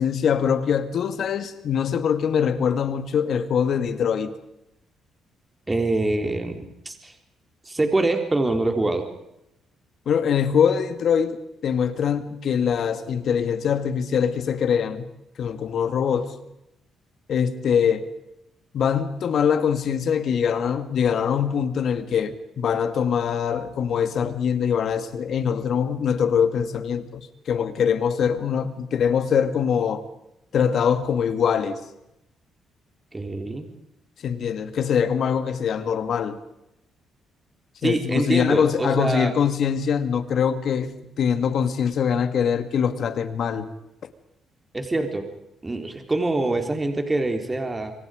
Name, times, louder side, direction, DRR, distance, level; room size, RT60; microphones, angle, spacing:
voice 1, 0.0-4.3 10.1-15.1 15.4-16.3 17.3-18.0 18.7-30.0 30.5-31.8 34.2-36.4 37.8-43.7, left 7 dB, 60° left, 2.2 m, -23 dB
voice 2, 5.7-7.1 7.6-9.1 33.1-33.7 37.8-39.3 44.7-45.3 45.6-47.9, right 2 dB, 20° right, 3.8 m, -25 dB
28.5 x 24.5 x 5.2 m
cardioid pair, 90°, 0 cm